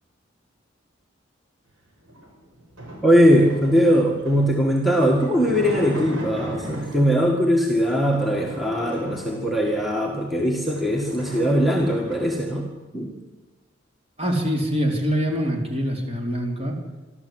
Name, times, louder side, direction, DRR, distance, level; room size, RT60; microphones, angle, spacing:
sound 1, 2.0-7.2 7.8-9.8 10.3-10.4 10.6-12.5, right 1 dB, 75° right, 6.3 m, -37 dB
voice 1, 3.0-12.7 12.9-13.1, equal, ahead, 0 dB, 1.9 m, -20 dB
voice 2, 14.2-16.8, equal, 30° right, 1 dB, 4.0 m, -24 dB
26.0 x 13.0 x 8.0 m, 1.2 s
head